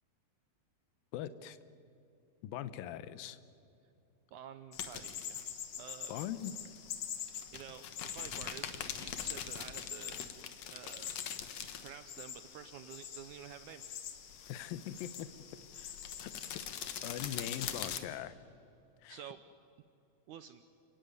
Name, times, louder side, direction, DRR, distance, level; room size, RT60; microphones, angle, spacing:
voice 1, 1.1-1.6 2.4-3.4 6.1-6.5 14.5-15.3 15.7-16.6 17.0-18.3 19.0-19.2, left 11 dB, 85° left, 13 dB, 2.7 m, -42 dB
voice 2, 4.3-5.5 5.8-6.1 7.5-10.2 10.7-11.2 11.8-13.8 19.1-19.4 20.3-20.6, right 9 dB, 75° right, 11 dB, 1.9 m, -50 dB
sound 1, 4.7-18.0, left 8 dB, 60° left, 2.1 m, -43 dB
29.5 x 17.0 x 9.5 m, 2.8 s
omnidirectional pair, 4.0 m